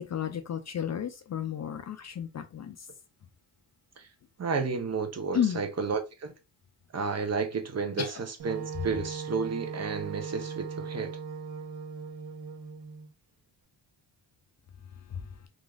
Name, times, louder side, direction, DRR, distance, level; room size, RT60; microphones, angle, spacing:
voice 1, 0.0-2.8 5.3-5.6 8.0-8.1, left 9 dB, 40° left, 0.4 m, -32 dB
voice 2, 4.4-6.3 6.9-11.2, right 5 dB, 35° right, 0.6 m, -32 dB
Wind instrument woodwind instrument, 8.4-13.1, right 5 dB, 65° right, 0.9 m, -39 dB
2.9 x 2.5 x 2.3 m
cardioid pair, 75°, 45 cm